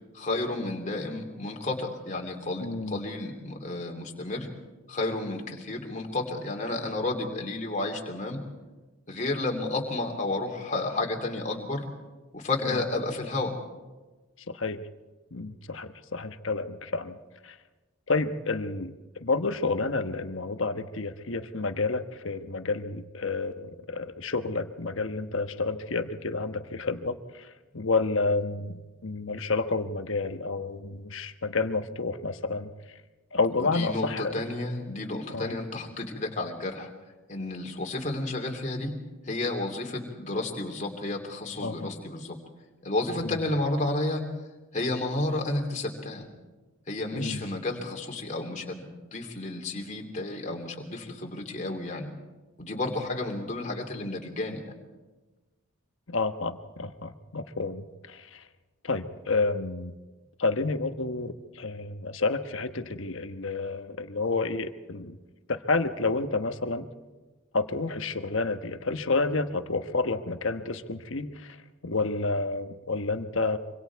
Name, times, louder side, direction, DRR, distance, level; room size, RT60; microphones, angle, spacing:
voice 1, 0.1-4.5 4.9-8.4 9.1-11.9 12.3-13.5 33.6-36.9 37.3-38.9 39.2-42.4 42.8-44.2 44.7-46.3 46.9-52.1 52.6-54.6, left 2 dB, 35° left, 1 dB, 2.9 m, -31 dB
voice 2, 2.6-3.0 14.5-14.8 15.3-17.2 17.4-17.5 18.1-27.5 27.7-28.7 29.0-32.7 33.3-34.3 35.3-35.6 41.6-41.9 43.2-43.4 47.1-47.4 56.1-58.4 58.8-59.9 60.4-65.2 65.5-66.9 67.5-71.6 71.8-73.6, left 3 dB, 65° left, 8 dB, 1.2 m, -30 dB
25.5 x 25.5 x 4.7 m, 1.2 s
head